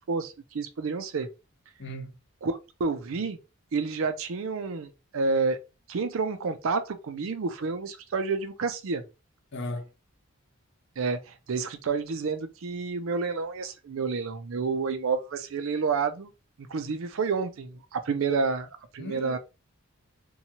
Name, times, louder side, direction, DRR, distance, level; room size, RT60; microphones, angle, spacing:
voice 1, 0.1-1.3 2.4-3.4 3.7-5.6 5.9-9.0 11.0-16.3 16.7-19.4, right 4 dB, 65° right, 0.4 m, -29 dB
voice 2, 1.8-2.2 9.5-9.9 19.0-19.4, left 1 dB, 50° left, 0.7 m, -36 dB
2.7 x 2.3 x 2.8 m
head